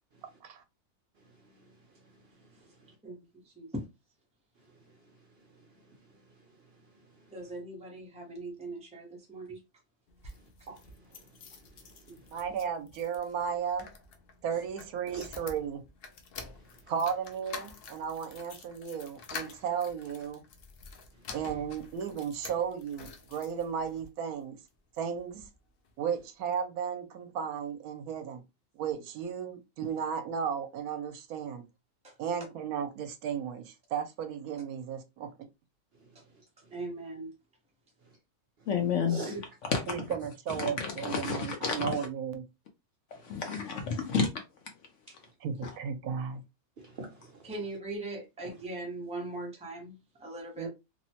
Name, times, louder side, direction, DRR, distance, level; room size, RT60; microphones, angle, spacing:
voice 1, 1.2-1.7 2.2-3.0 5.5-6.2 10.7-11.4 11.7-11.8 12.1-12.3 15.1-15.2 36.0-36.1 39.1-39.3 46.8-47.5, right 3 dB, 55° right, 0.7 m, -46 dB
voice 2, 7.3-9.4 10.2-10.3 32.0-32.2 36.1-36.2 36.7-37.3 39.2-39.4 47.4-50.7, right 2 dB, 5° right, 0.5 m, -40 dB
sound 1, 10.1-24.1 24.7-25.5 25.8-25.9 26.2-26.3, left 5 dB, 80° left, 0.5 m, -48 dB
voice 3, 12.3-13.9 14.4-15.8 16.9-20.4 21.3-24.6 24.9-25.5 26.0-28.4 28.7-31.6 32.2-35.3 39.9-42.4 45.4-46.4 50.6-50.7, right 7 dB, 75° right, 1.0 m, -34 dB
voice 4, 38.7-39.2 39.6-40.1 40.5-42.1 43.1-44.3 44.6-44.7 45.6-45.7, left 5 dB, 65° left, 0.8 m, -31 dB
2.9 x 2.1 x 2.7 m
omnidirectional pair, 1.6 m